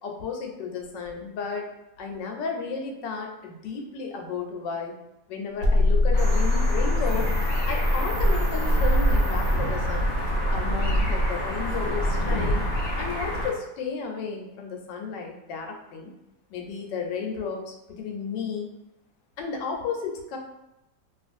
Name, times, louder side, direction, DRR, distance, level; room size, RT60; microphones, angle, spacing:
voice 1, 0.0-1.7 2.0-4.9 5.3-7.3 7.7-10.1 10.5-12.6 13.0-16.1 16.5-18.7 19.4-20.4, left 5 dB, 90° left, 2 dB, 1.2 m, -33 dB
sound 1, 5.6-8.7, left 2 dB, 65° right, 1.0 m, -23 dB
sound 2, 6.1-13.5, equal, 65° left, 0.9 m, -25 dB
sound 3, 6.2-10.0, right 8 dB, 90° right, 1.2 m, -44 dB
2.8 x 2.4 x 2.5 m, 0.91 s
omnidirectional pair, 1.9 m